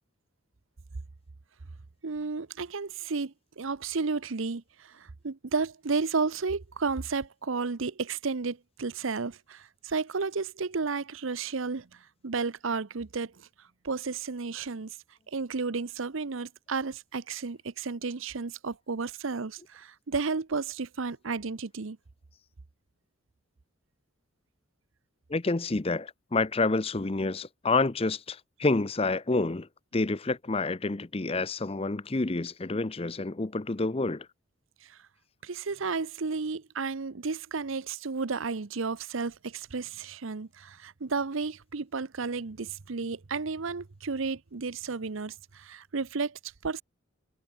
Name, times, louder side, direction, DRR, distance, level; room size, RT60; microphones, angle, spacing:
voice 1, 2.0-13.5 13.8-15.0 15.3-22.0 34.8-35.0 35.4-46.8, right 4 dB, 70° right, 0.8 m, -33 dB
voice 2, 25.3-34.3, left 3 dB, 30° left, 0.6 m, -28 dB
head